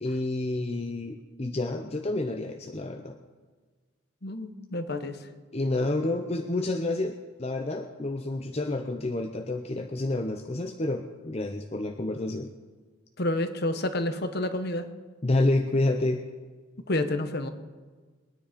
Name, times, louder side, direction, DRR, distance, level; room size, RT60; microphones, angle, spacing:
voice 1, 0.0-3.2 5.5-7.1 7.4-12.5 15.2-16.2, left 2 dB, 30° left, 4 dB, 0.7 m, -29 dB
voice 2, 4.2-5.3 13.2-14.9 16.9-17.5, left 1 dB, 50° left, 9 dB, 1.2 m, -29 dB
21.5 x 10.0 x 5.2 m, 1.4 s
head